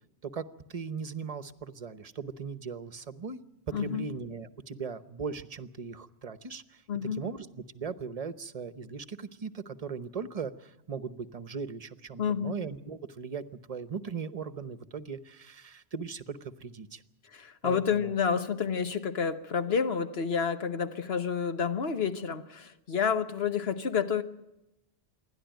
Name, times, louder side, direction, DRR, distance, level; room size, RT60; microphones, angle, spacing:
voice 1, 0.2-3.4 3.7-6.8 7.1-17.0 17.6-18.1, right 5 dB, 40° right, 13 dB, 0.9 m, -39 dB
voice 2, 3.7-4.1 6.9-7.2 12.2-12.5 17.3-24.2, left 6 dB, 75° left, 9 dB, 1.3 m, -29 dB
27.0 x 11.5 x 9.1 m, 0.92 s
omnidirectional pair, 1.1 m